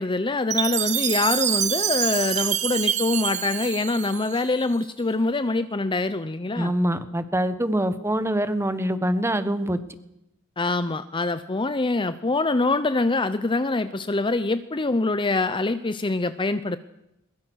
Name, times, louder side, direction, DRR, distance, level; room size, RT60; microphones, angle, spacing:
voice 1, 0.0-6.7 10.6-16.8, left 2 dB, 25° left, 12 dB, 0.7 m, -24 dB
Chime, 0.5-4.8, right 9 dB, 35° right, 0.8 m, -26 dB
voice 2, 6.5-9.8, right 1 dB, 10° right, 11 dB, 1.3 m, -24 dB
22.0 x 21.5 x 6.4 m, 0.86 s
head